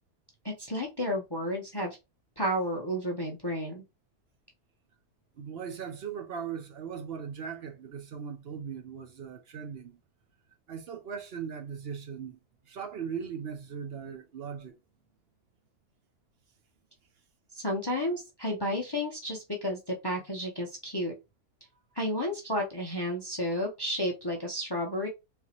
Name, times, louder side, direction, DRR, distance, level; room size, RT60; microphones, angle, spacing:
voice 1, 0.4-2.0 2.4-3.8 17.5-21.1 21.9-25.1, equal, 20° left, 0.7 m, -32 dB
voice 2, 5.4-10.0 10.7-12.4 12.6-14.7, right 7 dB, 60° right, 0.6 m, -39 dB
4.2 x 3.5 x 2.9 m
omnidirectional pair, 1.6 m